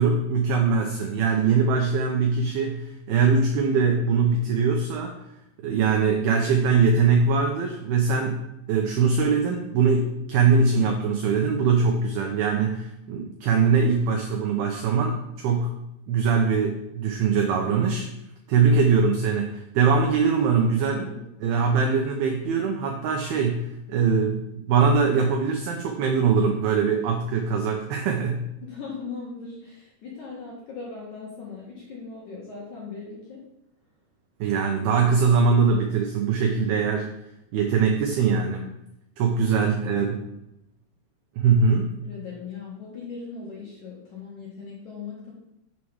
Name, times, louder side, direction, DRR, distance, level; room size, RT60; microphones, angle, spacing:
voice 1, 0.0-5.2 5.6-8.4 8.7-15.7 16.1-18.1 18.5-21.0 21.4-28.5 34.4-37.1 37.5-38.7 39.2-40.2 41.4-41.9, right 5 dB, 85° right, 2 dB, 2.2 m, -22 dB
voice 2, 20.8-21.2 28.6-33.4 39.4-39.6 42.0-45.3, left 5 dB, 60° left, -5 dB, 2.1 m, -39 dB
7.5 x 4.7 x 7.1 m, 0.84 s
omnidirectional pair, 5.5 m